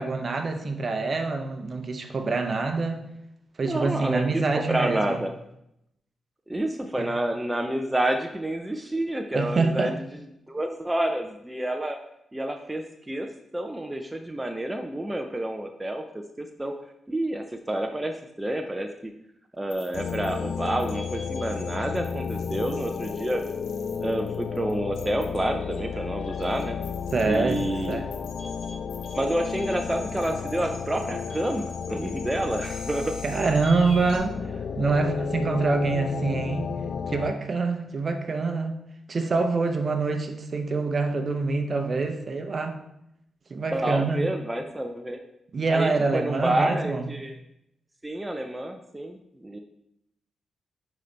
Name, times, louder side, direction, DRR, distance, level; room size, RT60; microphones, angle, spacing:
voice 1, 0.0-3.1 3.6-5.2 7.0-7.1 9.3-10.0 27.1-27.6 27.9-28.1 33.2-36.7 37.1-42.9 43.5-44.3 45.5-47.1, right 3 dB, 45° right, 6 dB, 0.8 m, -26 dB
voice 2, 3.6-5.3 6.5-10.0 10.5-12.0 12.3-13.3 13.5-16.0 16.4-16.7 17.1-19.1 19.5-23.4 24.0-26.8 27.3-28.0 29.1-33.2 43.7-45.2 45.7-47.4 48.0-49.6, right 1 dB, 15° right, 4 dB, 0.5 m, -29 dB
sound 1, 19.7-34.2, left 3 dB, 80° left, 1.2 m, -46 dB
sound 2, 19.9-37.3, left 6 dB, 65° left, 0.3 m, -33 dB
9.5 x 4.0 x 3.3 m, 0.81 s
cardioid pair, 80°, 0 cm